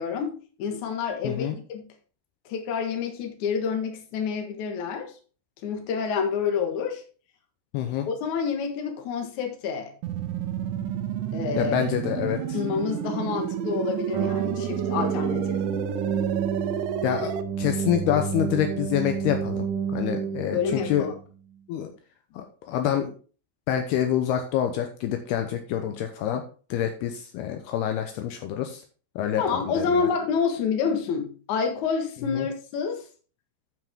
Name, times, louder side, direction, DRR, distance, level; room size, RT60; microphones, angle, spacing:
voice 1, 0.0-1.9 2.5-5.1 5.6-7.0 8.1-9.9 11.3-11.8 12.5-15.6 20.5-21.1 29.4-33.0, left 6 dB, 60° left, 4 dB, 2.0 m, -28 dB
voice 2, 1.2-1.6 7.7-8.1 11.6-12.4 17.0-17.3 17.6-19.7 19.9-20.6 20.9-21.1 21.7-21.9 22.4-23.1 23.7-26.4 26.7-28.8 29.2-30.1 32.3-32.5, left 10 dB, 90° left, 5 dB, 2.3 m, -27 dB
sound 1, 10.0-17.4, right 10 dB, 85° right, 2.9 m, -31 dB
sound 2, 14.1-21.2, right 7 dB, 70° right, 1.9 m, -30 dB
13.0 x 5.9 x 3.6 m, 0.38 s
omnidirectional pair, 5.7 m